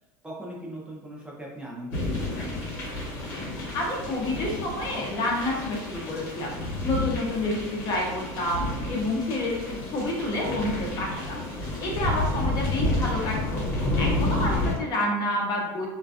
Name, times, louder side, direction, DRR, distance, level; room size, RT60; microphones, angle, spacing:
voice 1, 0.2-2.5, right 1 dB, 10° right, -4 dB, 0.4 m, -40 dB
sound 1, 1.9-14.7, left 2 dB, 80° left, 1.0 m, -30 dB
voice 2, 3.7-6.5 6.8-11.4 11.8-13.7 14.0-15.9, left 1 dB, 40° left, -1 dB, 0.7 m, -29 dB
2.4 x 2.3 x 2.3 m, 1.1 s
supercardioid pair, 125°, 10 cm